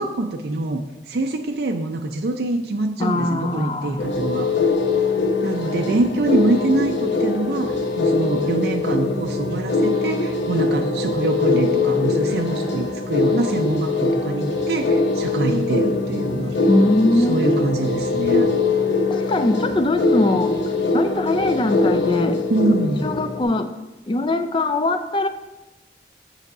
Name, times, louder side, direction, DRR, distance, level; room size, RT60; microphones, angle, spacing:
voice 1, 0.0-4.7 5.4-16.6 17.2-18.6 22.5-23.1, right 2 dB, 65° right, 3 dB, 0.5 m, -24 dB
voice 2, 3.0-4.0 16.6-17.4 19.1-20.6 20.9-22.7 23.0-23.7 24.1-25.3, left 2 dB, 30° left, 9 dB, 0.4 m, -21 dB
sound 1, 4.0-23.4, left 3 dB, 85° left, 0.8 m, -22 dB
7.8 x 4.6 x 4.8 m, 1.1 s
head